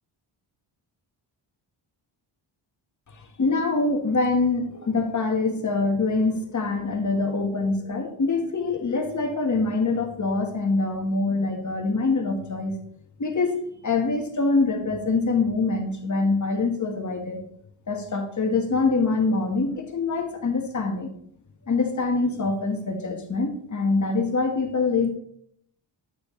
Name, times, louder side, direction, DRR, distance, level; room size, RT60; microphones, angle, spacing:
voice 1, 3.1-12.8 13.2-13.6 13.8-17.4 17.9-21.1 21.7-25.1, left 3 dB, 35° left, 4 dB, 1.4 m, -24 dB
10.5 x 6.2 x 3.2 m, 0.68 s
cardioid pair, 110°, 49 cm